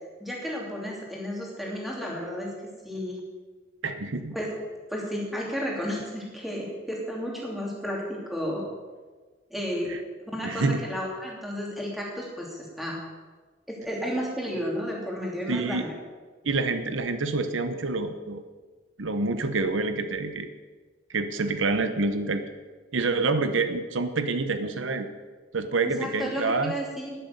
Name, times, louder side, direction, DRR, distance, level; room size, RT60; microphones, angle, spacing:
voice 1, 0.2-2.5 2.8-3.2 4.3-4.5 4.9-8.6 9.5-9.9 10.2-13.0 13.7-15.9 25.8-27.2, equal, ahead, -3 dB, 2.8 m, -32 dB
voice 2, 3.8-4.4 9.9-10.0 10.4-10.8 15.5-15.9 16.4-18.4 19.0-20.5 21.1-22.4 22.9-25.1 25.5-26.7, right 3 dB, 85° right, 9 dB, 0.9 m, -27 dB
11.5 x 10.5 x 6.7 m, 1.4 s
head